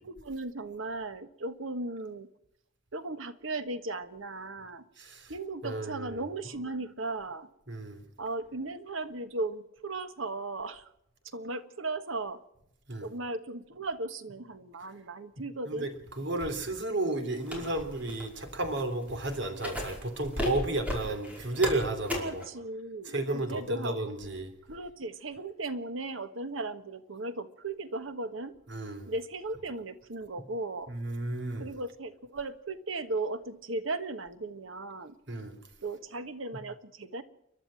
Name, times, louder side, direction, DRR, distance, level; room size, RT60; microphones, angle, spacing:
voice 1, 0.0-2.3 2.9-4.8 5.3-7.5 8.2-10.9 11.3-12.4 13.0-15.9 22.1-24.0 24.7-28.5 29.1-30.9 31.6-35.2 35.8-37.2, right 2 dB, 85° right, 10 dB, 1.5 m, -37 dB
voice 2, 5.0-5.3 5.6-6.2 7.7-8.0 12.9-13.1 15.7-22.4 23.0-24.5 28.7-29.1 30.9-31.7 35.3-35.6, right 2 dB, 65° right, 8 dB, 3.2 m, -33 dB
sound 1, 17.4-22.4, left 1 dB, 5° right, 5.2 m, -36 dB
29.5 x 11.5 x 7.6 m, 0.81 s
head